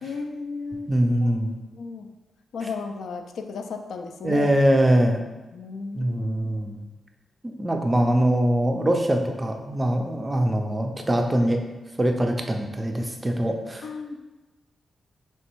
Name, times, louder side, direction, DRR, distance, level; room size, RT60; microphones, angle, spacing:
voice 1, 0.0-0.9 1.2-1.4 1.6-2.1 2.5-4.5 5.5-6.5 13.8-14.2, left 4 dB, 85° left, 5 dB, 0.4 m, -34 dB
voice 2, 0.9-1.6 4.2-5.2 5.9-6.8 7.6-11.6 12.0-13.8, right 1 dB, 15° right, 3 dB, 0.4 m, -22 dB
3.3 x 3.1 x 4.4 m, 1.1 s
wide cardioid pair, 170°, 0 cm